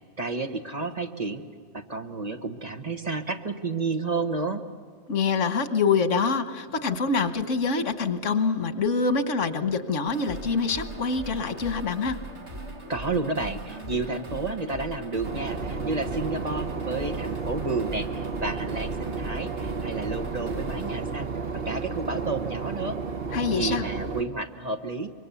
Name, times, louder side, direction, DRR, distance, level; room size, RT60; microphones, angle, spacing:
voice 1, 0.2-1.4 1.7-4.6 12.9-23.0 23.6-25.1, right 3 dB, 35° right, 5 dB, 1.3 m, -31 dB
voice 2, 5.1-12.2 23.3-23.9, left 4 dB, 90° left, 9 dB, 1.5 m, -25 dB
sound 1, 10.1-22.1, right 1 dB, 70° right, 2.6 m, -40 dB
Boat Water vehicle / Engine, 15.2-24.2, right 4 dB, 55° right, 1.2 m, -32 dB
25.5 x 23.0 x 7.0 m, 2.1 s
omnidirectional pair, 1.2 m